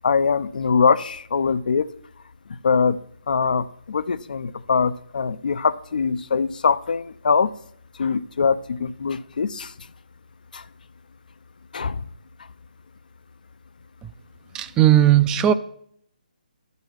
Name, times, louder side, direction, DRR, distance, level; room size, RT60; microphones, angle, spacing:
voice 1, 0.0-1.9 2.6-3.0 3.3-7.5 8.0-9.7 10.5-10.6 11.7-12.0, left 5 dB, 65° left, 15 dB, 0.5 m, -22 dB
voice 2, 14.5-15.5, right 12 dB, 10° right, 11 dB, 0.4 m, -16 dB
11.0 x 4.1 x 7.3 m, 0.68 s
figure-of-eight pair, 150°, 5 cm